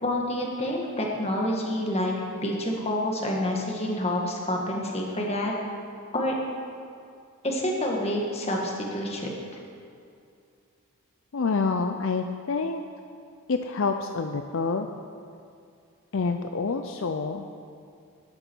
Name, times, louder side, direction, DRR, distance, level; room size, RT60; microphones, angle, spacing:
voice 1, 0.0-2.1 2.4-5.7 6.1-6.4 7.4-9.3, left 1 dB, 25° left, -1 dB, 1.7 m, -28 dB
voice 2, 11.3-12.8 13.5-14.9 16.1-17.4, left 4 dB, 60° left, 6 dB, 0.5 m, -27 dB
13.5 x 11.5 x 4.6 m, 2.4 s
head